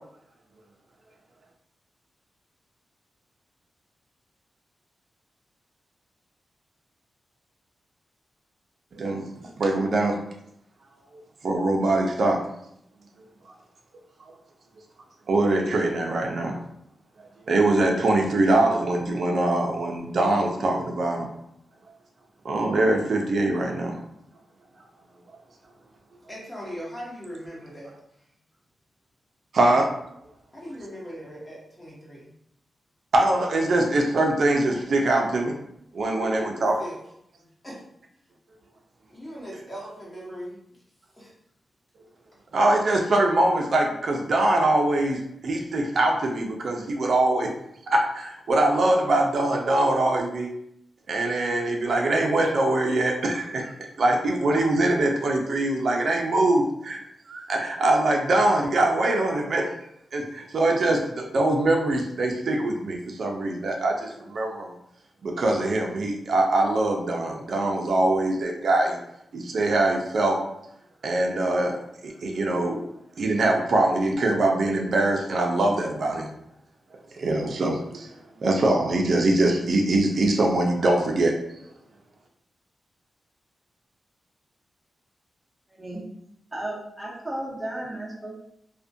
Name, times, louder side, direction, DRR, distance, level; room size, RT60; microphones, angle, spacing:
voice 1, 8.9-10.2 11.4-12.4 15.3-16.6 17.5-21.3 22.4-24.0 29.5-29.9 33.1-35.6 35.9-36.8 42.5-47.5 47.9-50.5 51.1-53.7 54.0-57.0 57.3-59.7 60.1-64.7 65.2-69.0 69.3-70.4 71.0-72.9 73.2-76.3 77.2-78.1 78.4-81.4, right 2 dB, 60° right, 1 dB, 0.4 m, -23 dB
voice 2, 26.3-27.9 30.5-32.3 35.2-35.3 36.1-37.0 37.6-37.7 39.1-40.6 41.2-41.3, equal, 15° left, -6 dB, 1.0 m, -39 dB
voice 3, 86.5-88.4, right 1 dB, 10° right, -4 dB, 0.7 m, -34 dB
2.5 x 2.1 x 2.6 m, 0.74 s
wide cardioid pair, 130°, 0 cm